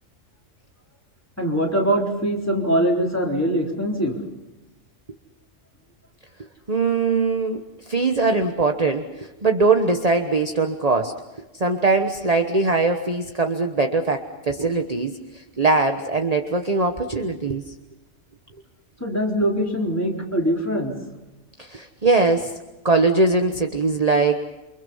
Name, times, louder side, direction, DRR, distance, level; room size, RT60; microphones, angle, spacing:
voice 1, 1.4-4.2 19.0-20.9, right 1 dB, 10° left, -1 dB, 4.0 m, -22 dB
voice 2, 6.7-11.1 11.5-17.7 21.6-22.5 22.8-24.4, right 3 dB, 30° right, 5 dB, 1.2 m, -21 dB
28.5 x 25.0 x 5.6 m, 1.0 s
omnidirectional pair, 1.3 m